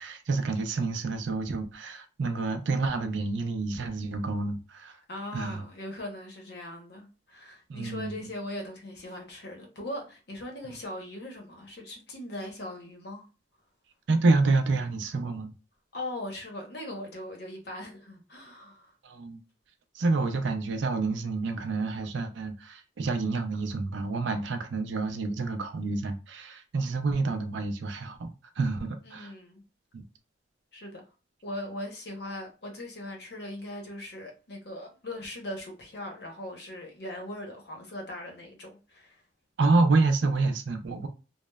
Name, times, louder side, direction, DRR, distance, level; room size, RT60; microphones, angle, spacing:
voice 1, 0.0-5.0 5.3-5.6 7.7-8.2 14.1-15.5 19.0-19.4 19.9-29.3 29.9-30.0 39.6-41.1, right 3 dB, 70° right, 0.4 m, -28 dB
voice 2, 5.1-13.2 15.9-18.9 29.0-29.6 30.7-31.0 31.4-39.2, left 1 dB, 55° left, 0.7 m, -40 dB
3.0 x 2.0 x 2.2 m
head